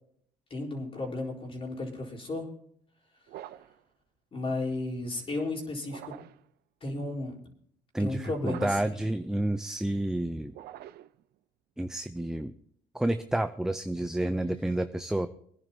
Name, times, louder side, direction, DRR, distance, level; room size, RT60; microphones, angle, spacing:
voice 1, 0.5-2.5 4.3-6.1 6.8-7.3 8.0-9.0, left 2 dB, 35° left, 0 dB, 4.1 m, -34 dB
sound 1, 3.3-3.8 5.8-6.5 8.4-9.0 10.5-11.2, right 13 dB, 70° right, 0.6 m, -44 dB
voice 2, 7.9-10.5 11.8-12.5 12.9-15.3, right 1 dB, 5° right, 9 dB, 0.5 m, -30 dB
24.5 x 10.5 x 2.8 m, 0.66 s
cardioid pair, 110°, 17 cm